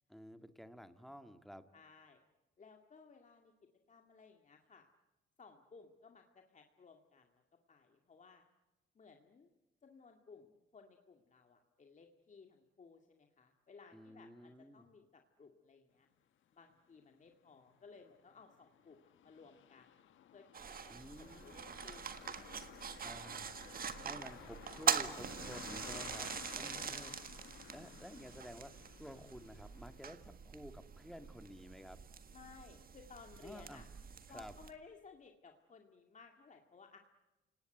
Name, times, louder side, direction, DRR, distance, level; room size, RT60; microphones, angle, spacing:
voice 1, 0.1-1.7 13.9-14.9 20.9-21.6 23.0-23.6 24.0-27.1 27.7-28.7 29.0-32.0 33.4-33.8 34.3-34.5, equal, ahead, 9 dB, 1.9 m, -52 dB
voice 2, 1.7-2.2 2.6-3.5 3.9-4.9 5.4-7.4 7.7-8.5 9.0-9.5 9.8-16.1 16.5-20.1 20.3-23.9 26.6-27.4 32.3-33.9 34.3-37.0, left 5 dB, 40° left, 4 dB, 2.1 m, -59 dB
sound 1, 16.7-16.8 17.3-30.1, left 10 dB, 75° left, 1.7 m, -55 dB
sound 2, 20.5-34.7, right 7 dB, 45° right, 1.7 m, -43 dB
29.0 x 19.0 x 9.1 m, 1.1 s
cardioid pair, 90°, 20 cm